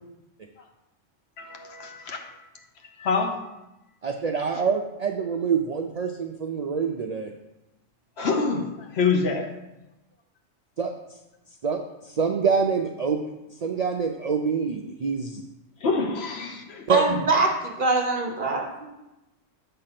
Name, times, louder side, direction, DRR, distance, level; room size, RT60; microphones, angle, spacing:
voice 1, 1.4-2.4 3.0-3.4 8.2-9.5 15.8-16.9, left 4 dB, 60° left, 4 dB, 1.0 m, -26 dB
voice 2, 4.0-7.3 10.8-10.9 11.6-11.8 12.0-13.3 13.6-15.4 16.9-17.0, right 6 dB, 80° right, 4 dB, 0.3 m, -25 dB
voice 3, 16.9-18.9, right 2 dB, 45° right, 1 dB, 1.1 m, -24 dB
7.4 x 3.3 x 5.8 m, 0.95 s
omnidirectional pair, 1.3 m